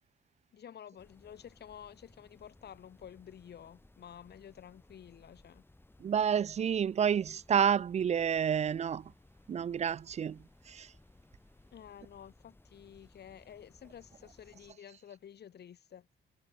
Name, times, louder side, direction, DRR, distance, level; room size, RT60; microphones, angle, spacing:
voice 1, 0.5-5.6 11.7-16.1, left 9 dB, 55° left, 1.7 m, -51 dB
sound 1, 1.0-14.7, left 2 dB, 10° left, 2.5 m, -62 dB
voice 2, 6.0-9.1 9.5-10.4 10.7-10.9, right 8 dB, 35° right, 0.4 m, -29 dB
cardioid pair, 90°, 20 cm